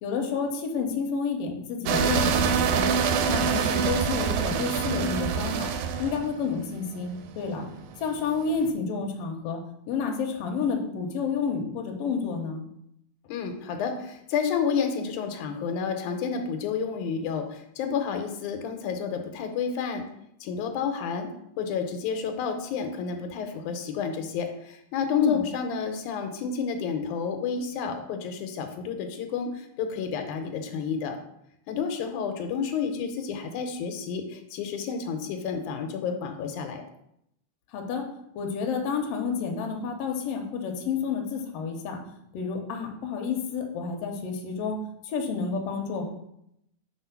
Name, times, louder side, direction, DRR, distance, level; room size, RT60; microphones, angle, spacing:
voice 1, 0.0-2.9 3.3-5.7 6.0-7.7 8.0-9.6 9.9-12.6 25.1-25.4 37.7-38.1 38.3-42.0 42.3-44.8 45.0-46.1, left 5 dB, 70° left, 3 dB, 1.6 m, -30 dB
sound 1, 1.9-8.6, right 6 dB, 85° right, 1.9 m, -25 dB
voice 2, 13.3-20.1 20.4-21.3 21.6-31.2 31.7-36.8, left 6 dB, 85° left, 5 dB, 2.1 m, -30 dB
4.4 x 4.4 x 5.7 m, 0.77 s
omnidirectional pair, 3.4 m